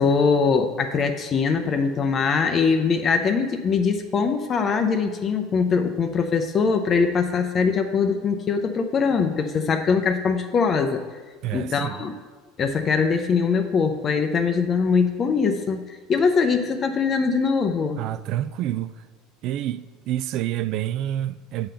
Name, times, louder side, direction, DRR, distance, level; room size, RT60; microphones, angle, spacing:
voice 1, 0.0-11.0 11.5-12.1 12.6-18.0, left 5 dB, 30° left, 0.5 m, -22 dB
voice 2, 11.4-12.0 18.0-18.9 19.4-21.7, right 12 dB, 55° right, 0.3 m, -28 dB
8.7 x 3.8 x 6.8 m
supercardioid pair, 135°, 0 cm